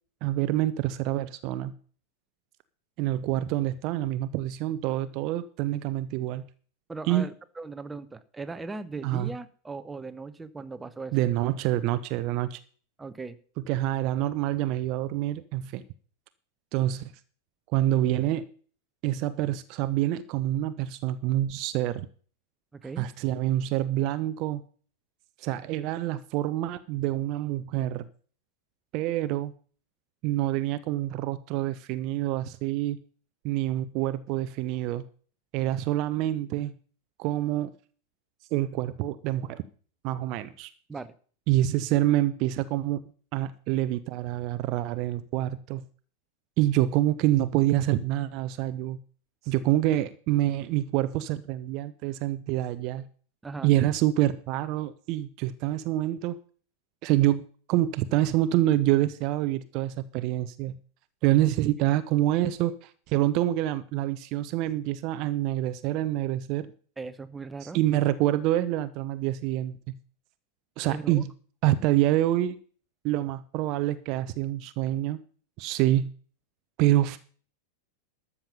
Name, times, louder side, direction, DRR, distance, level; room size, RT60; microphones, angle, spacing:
voice 1, 0.2-1.7 3.0-6.4 7.1-7.2 9.0-9.3 11.1-12.6 13.7-15.8 16.7-17.1 17.7-18.4 19.0-22.1 23.0-24.6 25.4-28.1 28.9-29.5 30.2-33.0 33.4-35.0 35.5-36.7 37.2-37.7 38.5-39.6 40.0-40.7 41.5-43.0 43.3-45.8 46.6-49.0 49.5-53.1 53.6-56.4 57.0-57.4 57.7-60.7 61.2-66.7 67.6-69.8 70.8-71.3 71.6-72.6 73.0-75.2 75.6-76.1 76.8-77.2, right 14 dB, 40° right, 14 dB, 0.7 m, -26 dB
voice 2, 6.9-11.2 13.0-13.4 22.7-23.1 40.9-41.1 53.4-53.7 61.4-61.5 67.0-67.8 70.9-71.2, right 4 dB, 10° right, 12 dB, 1.0 m, -38 dB
13.0 x 7.1 x 7.0 m, 0.43 s
figure-of-eight pair, 90°, 0 cm